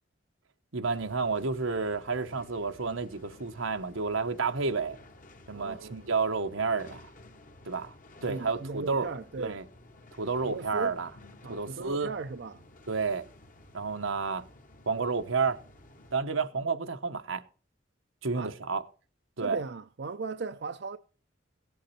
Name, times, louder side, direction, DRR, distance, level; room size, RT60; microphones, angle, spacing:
voice 1, 0.7-5.0 5.5-7.1 7.6-7.9 8.2-9.1 9.4-9.6 10.2-11.1 11.5-12.1 12.9-13.2 13.7-14.4 14.9-15.6 16.1-17.4 18.2-18.8 19.4-19.6, right 4 dB, 90° right, 1.2 m, -30 dB
sound 1, 0.8-16.2, left 2 dB, 40° left, 1.2 m, -54 dB
voice 2, 5.5-6.1 8.3-9.6 10.4-11.0 11.4-12.6 18.3-18.5 19.4-21.0, right 4 dB, 60° right, 0.6 m, -37 dB
16.5 x 8.4 x 4.3 m
head